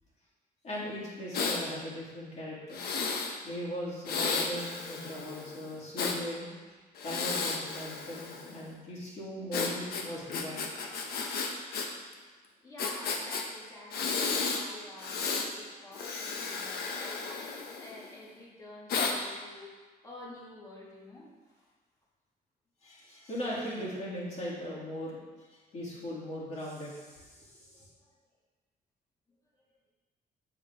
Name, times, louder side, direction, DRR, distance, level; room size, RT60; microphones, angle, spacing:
voice 1, 0.6-2.8 3.4-6.5 7.0-10.7 22.8-25.2 25.5-27.8, equal, 45° left, -6 dB, 3.0 m, -39 dB
Breathing, 1.3-1.6 2.7-3.4 4.1-6.2 7.0-8.6 9.5-11.9 12.1-12.2 12.8-13.4 13.9-14.6 15.0-15.5 15.9-18.1 18.9-19.2, left 4 dB, 75° left, 1.1 m, -33 dB
voice 2, 12.6-21.7 27.7-27.9, left 2 dB, 20° left, -5 dB, 2.1 m, -49 dB
8.5 x 8.0 x 3.7 m, 1.3 s
cardioid pair, 165°, 16 cm